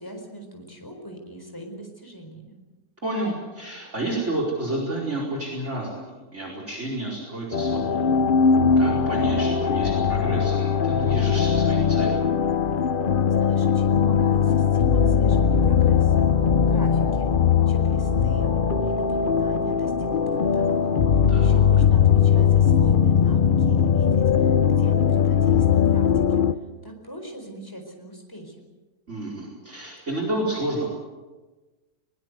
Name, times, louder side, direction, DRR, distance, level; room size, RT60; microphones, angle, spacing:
voice 1, 0.0-2.6 13.3-16.2 16.7-17.3 17.7-18.5 18.8-20.9 21.3-24.2 24.7-26.4 26.8-28.5, right 1 dB, 10° left, 3 dB, 4.4 m, -40 dB
voice 2, 3.0-8.0 8.8-12.2 21.3-21.5 29.1-30.9, right 1 dB, 45° right, -1 dB, 4.9 m, -30 dB
sound 1, 7.5-26.5, left 7 dB, 45° left, 0.8 m, -20 dB
21.5 x 20.5 x 8.0 m, 1.2 s
omnidirectional pair, 1.8 m